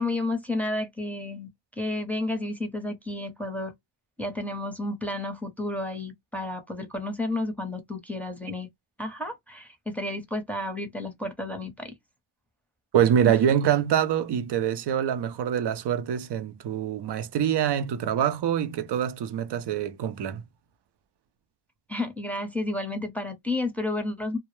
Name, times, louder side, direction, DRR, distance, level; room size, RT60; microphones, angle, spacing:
voice 1, 0.0-1.5 1.8-3.7 4.2-8.7 9.0-11.9 13.3-13.4 21.9-24.4, left 2 dB, 5° left, 0.6 m, -31 dB
voice 2, 12.9-20.4, right 9 dB, 60° right, 0.6 m, -25 dB
2.2 x 2.0 x 3.0 m
cardioid pair, 90°, 45 cm